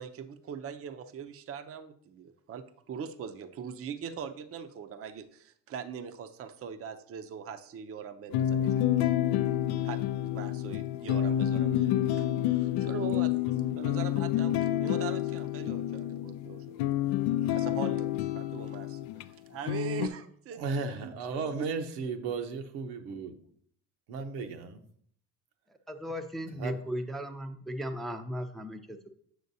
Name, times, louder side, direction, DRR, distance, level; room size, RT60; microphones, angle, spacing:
voice 1, 0.0-9.1 9.8-16.8 17.5-21.7, right 7 dB, 35° right, 9 dB, 0.6 m, -41 dB
sound 1, 8.3-19.3 19.7-20.1, left 12 dB, 75° left, 0.5 m, -29 dB
voice 2, 20.5-23.3 24.1-24.8 26.5-26.8, right 4 dB, 70° right, 6 dB, 1.0 m, -35 dB
voice 3, 25.9-29.1, equal, ahead, 5 dB, 0.6 m, -36 dB
8.0 x 6.4 x 2.7 m, 0.62 s
hypercardioid pair, 70°, 38 cm